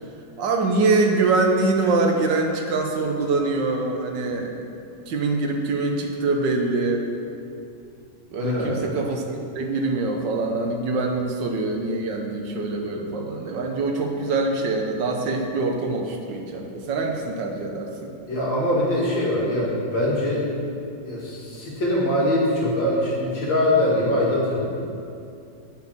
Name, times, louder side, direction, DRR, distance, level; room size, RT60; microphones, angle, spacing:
voice 1, 0.4-4.7 5.1-7.0 8.3-9.2 9.5-18.1, right 3 dB, 70° right, 2 dB, 1.5 m, -24 dB
voice 2, 8.4-8.8 18.3-20.4 21.0-24.7, left 1 dB, 70° left, -5 dB, 2.8 m, -23 dB
8.0 x 6.5 x 7.2 m, 2.5 s
omnidirectional pair, 2.1 m